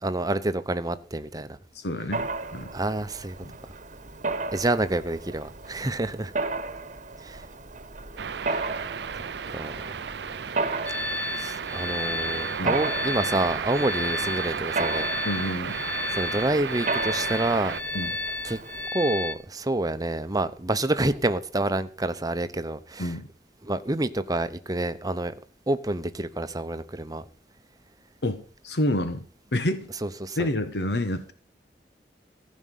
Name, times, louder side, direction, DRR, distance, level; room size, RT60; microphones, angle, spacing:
voice 1, 0.0-1.6 2.7-3.4 4.5-6.3 7.2-7.5 8.5-8.6 9.5-9.9 11.3-15.1 16.1-17.7 18.4-18.6 18.9-23.2 23.6-25.3 25.7-27.3 30.0-30.5, right 2 dB, 20° right, 11 dB, 0.8 m, -28 dB
voice 2, 1.7-2.7 3.4-3.5 12.6-12.8 15.2-15.8 17.9-18.1 23.0-23.3 28.2-29.3 29.5-29.9 30.4-31.3, left 1 dB, 70° left, 10 dB, 1.2 m, -28 dB
Mechanisms, 2.1-18.9, right 3 dB, 45° right, 1.2 m, -34 dB
sound 1, 8.2-17.8, right 6 dB, 70° right, 0.5 m, -33 dB
sound 2, 10.8-19.3, left 3 dB, 10° left, 1.0 m, -33 dB
15.0 x 5.4 x 9.2 m, 0.42 s
head